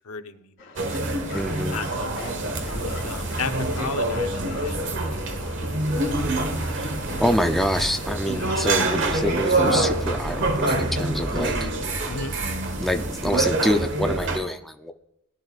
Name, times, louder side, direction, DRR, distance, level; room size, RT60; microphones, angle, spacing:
voice 1, 0.1-0.5 1.6-2.1 2.9-5.6 8.2-8.5 12.1-12.4, left 5 dB, 80° left, 7 dB, 0.9 m, -35 dB
sound 1, 0.6-9.5, left 4 dB, 55° left, 3.2 m, -42 dB
sound 2, 0.8-14.4, right 2 dB, 55° right, 1.4 m, -26 dB
voice 2, 1.3-1.8 6.8-11.7 12.7-14.9, equal, ahead, 4 dB, 0.5 m, -26 dB
Boom, 2.4-7.2 7.4-7.5 8.6-8.7, equal, 25° right, 2.0 m, -41 dB
18.5 x 10.5 x 2.5 m, 0.82 s
head